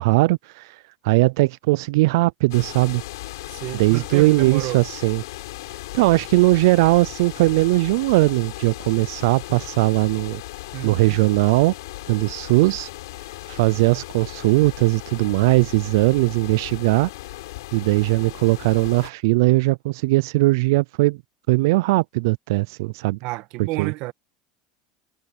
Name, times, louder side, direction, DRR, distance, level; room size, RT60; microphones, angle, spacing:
voice 1, 0.0-3.0 3.7-5.2 5.9-10.4 10.8-11.7 12.1-12.9 13.5-17.1 17.7-21.2 21.5-23.2 23.6-23.9, right 22 dB, 80° right, 0.3 m, -19 dB
sound 1, 2.5-19.1, left 18 dB, 85° left, 7.0 m, -37 dB
voice 2, 3.5-4.8 10.7-11.2 23.2-24.1, right 20 dB, 60° right, 1.7 m, -30 dB
supercardioid pair, 125°, 2 cm